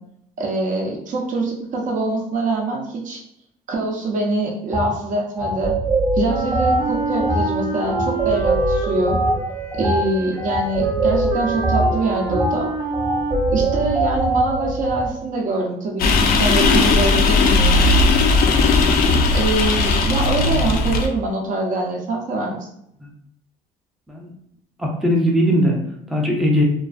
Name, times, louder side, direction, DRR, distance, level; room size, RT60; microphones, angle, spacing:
voice 1, 0.4-3.2 3.7-5.7 6.1-9.2 9.8-12.7 13.5-17.9 19.3-22.7, right 2 dB, 50° right, 0 dB, 0.6 m, -24 dB
sound 1, 4.7-4.9 5.4-15.1, right 2 dB, 20° right, 0.9 m, -22 dB
Wind instrument woodwind instrument, 6.2-14.5, right 3 dB, 85° right, 0.7 m, -29 dB
sound 2, 16.0-21.1, left 3 dB, 60° left, 0.4 m, -17 dB
voice 2, 24.8-25.8 26.1-26.6, equal, ahead, -1 dB, 0.4 m, -19 dB
2.4 x 2.3 x 2.4 m, 0.76 s
cardioid pair, 110°, 17 cm